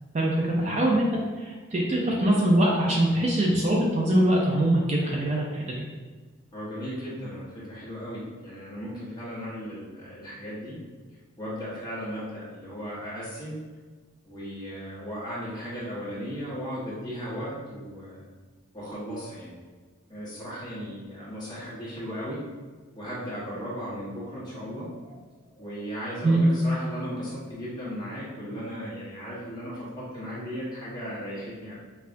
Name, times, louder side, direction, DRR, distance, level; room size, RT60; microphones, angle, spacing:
voice 1, 0.1-1.1 1.4-5.8 26.2-26.4, right 1 dB, 30° right, -2 dB, 0.4 m, -23 dB
voice 2, 6.5-10.8 11.4-13.6 14.2-18.2 18.7-19.5 20.1-22.4 23.0-24.9 25.6-31.7, equal, 20° left, -8 dB, 1.1 m, -36 dB
5.5 x 2.3 x 2.5 m, 1.4 s
head